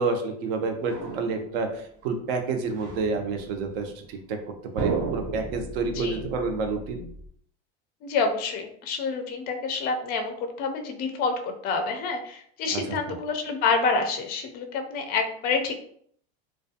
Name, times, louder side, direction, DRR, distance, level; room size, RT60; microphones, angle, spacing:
voice 1, 0.0-4.4 4.7-7.1 12.7-13.1, right 4 dB, 75° right, 5 dB, 0.6 m, -29 dB
sound 1, 0.8-1.9 2.6-4.1 4.8-7.3, right 3 dB, 40° right, 0.7 m, -35 dB
voice 2, 5.9-6.2 8.0-15.8, left 4 dB, 30° left, 5 dB, 0.4 m, -28 dB
2.4 x 2.2 x 2.6 m, 0.64 s
supercardioid pair, 135°, 30 cm